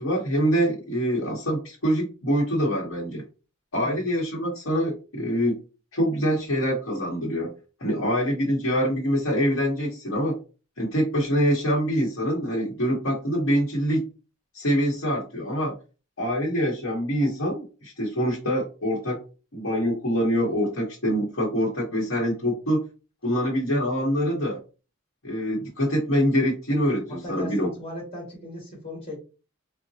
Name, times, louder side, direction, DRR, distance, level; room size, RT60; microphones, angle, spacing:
voice 1, 0.0-3.2 3.7-5.6 5.9-7.5 7.8-10.4 10.8-14.0 14.5-15.7 16.2-19.2 19.5-22.8 23.2-24.6 25.2-27.7, equal, 70° left, -4 dB, 0.9 m, -25 dB
voice 2, 27.1-29.2, left 1 dB, 25° left, -3 dB, 1.5 m, -37 dB
3.8 x 2.1 x 2.6 m, 0.33 s
head